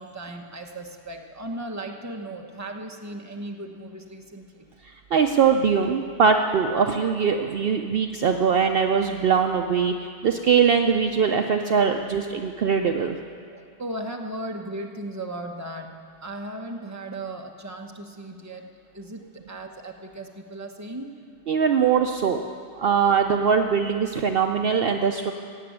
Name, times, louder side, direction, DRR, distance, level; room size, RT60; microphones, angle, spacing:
voice 1, 0.0-4.7 13.5-15.9 16.2-18.7 18.9-21.1, right 1 dB, 15° right, 2 dB, 1.0 m, -36 dB
voice 2, 5.1-13.2 21.5-22.4 22.8-25.3, right 6 dB, 60° right, 5 dB, 0.8 m, -21 dB
16.5 x 7.7 x 9.3 m, 2.2 s
omnidirectional pair, 1.2 m